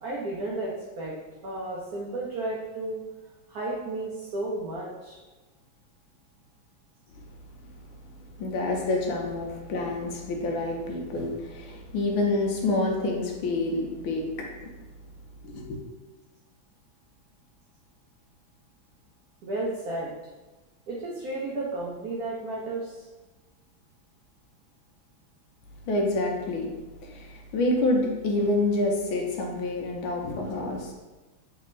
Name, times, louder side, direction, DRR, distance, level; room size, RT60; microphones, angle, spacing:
voice 1, 0.0-1.1 1.4-3.0 3.5-5.2 19.4-20.1 20.9-23.1, right 2 dB, 85° right, -4 dB, 0.8 m, -33 dB
voice 2, 8.4-14.7 15.4-15.8 25.9-26.7 27.0-30.9, left 2 dB, 75° left, 1 dB, 1.4 m, -28 dB
3.5 x 3.3 x 3.0 m, 1.2 s
omnidirectional pair, 2.4 m